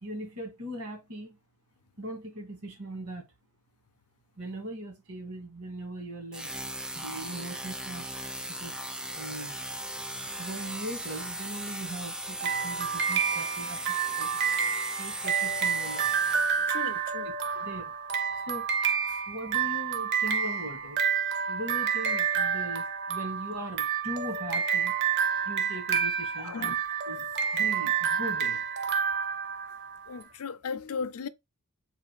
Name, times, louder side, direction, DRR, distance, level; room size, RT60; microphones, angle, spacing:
voice 1, 0.0-1.4 2.0-3.2 4.4-8.1 8.6-8.8 9.1-9.6 10.4-14.4 15.0-16.1 16.4-16.6 17.2-17.9 18.5-18.9 19.3-21.0 21.5-24.9 25.5-26.7 27.1-28.6, right 1 dB, 75° right, 1.9 m, -40 dB
sound 1, 6.3-16.9, right 1 dB, 5° right, 0.3 m, -38 dB
sound 2, 12.4-30.1, right 7 dB, 50° right, 0.7 m, -29 dB
voice 2, 16.6-17.3 19.1-19.2 26.4-26.8 29.7-29.8 30.1-31.3, left 5 dB, 70° left, 0.5 m, -37 dB
3.9 x 2.4 x 4.6 m
head